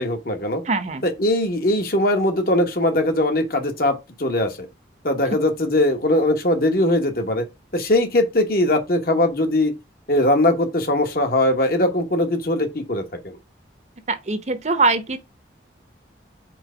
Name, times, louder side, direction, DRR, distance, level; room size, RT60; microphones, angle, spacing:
voice 1, 0.0-0.6 1.0-4.7 5.0-7.4 7.7-9.7 10.1-13.3, left 1 dB, 50° left, 1.1 m, -20 dB
voice 2, 0.6-1.0 14.1-15.2, right 3 dB, 35° right, 0.7 m, -22 dB
4.6 x 4.5 x 5.0 m
head